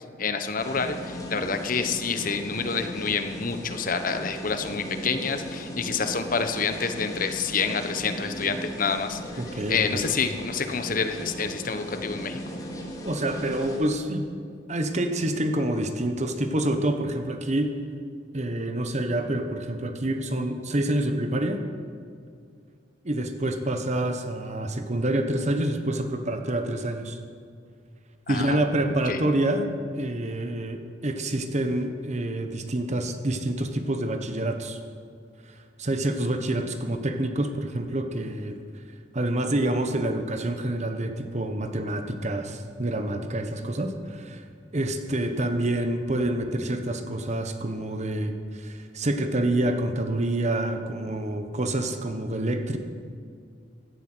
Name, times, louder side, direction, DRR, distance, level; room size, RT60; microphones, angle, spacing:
voice 1, 0.2-9.2 9.7-12.4 28.3-28.6 29.1-29.2, left 5 dB, 50° left, 8 dB, 1.1 m, -28 dB
sound 1, 0.6-13.8, equal, 20° left, 2.3 m, -37 dB
voice 2, 9.4-10.1 13.0-14.3 14.7-17.7 18.3-21.6 23.0-27.2 28.3-29.7 29.9-34.8 35.5-38.6 39.1-44.5 44.7-52.8, right 1 dB, 40° right, 7 dB, 1.1 m, -27 dB
16.5 x 11.5 x 6.2 m, 2.2 s
head